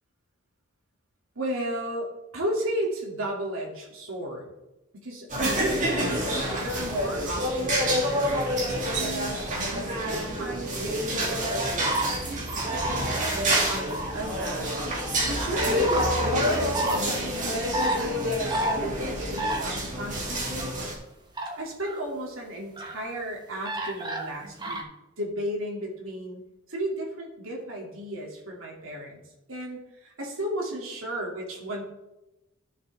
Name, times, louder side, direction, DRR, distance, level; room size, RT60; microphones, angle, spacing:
voice 1, 1.3-4.5 4.9-12.2 12.6-13.0 13.3-14.9 15.3-17.7 18.0-20.8 21.6-24.8 25.2-26.4 26.7-29.2 29.5-31.9, right 1 dB, 70° right, -2 dB, 2.8 m, -35 dB
sound 1, 5.3-20.9, equal, 40° right, 2.8 m, -27 dB
sound 2, 11.8-12.1 12.5-13.1 13.6-14.2 15.0-15.2 15.5-16.3 16.7-17.0 17.7-18.0 18.5-18.8 19.4-19.6 20.3-20.7 21.4-21.6 21.8-22.0 22.8-23.0 23.6-24.8, right 1 dB, 20° right, 1.4 m, -30 dB
13.5 x 6.8 x 3.6 m, 0.98 s
head